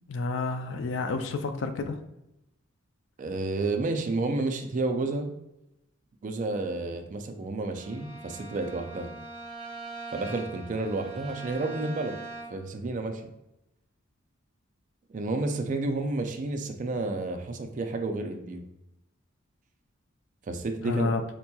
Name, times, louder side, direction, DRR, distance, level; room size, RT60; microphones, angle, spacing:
voice 1, 0.1-2.0 20.8-21.2, left 3 dB, 60° left, 8 dB, 0.3 m, -30 dB
voice 2, 3.2-5.3 6.2-9.1 10.1-12.2 12.5-13.2 15.1-18.6 20.5-21.1, right 2 dB, 40° right, 6 dB, 0.3 m, -30 dB
Bowed string instrument, 7.7-12.7, right 2 dB, 25° left, 0.7 m, -42 dB
4.3 x 2.9 x 2.2 m, 0.89 s
head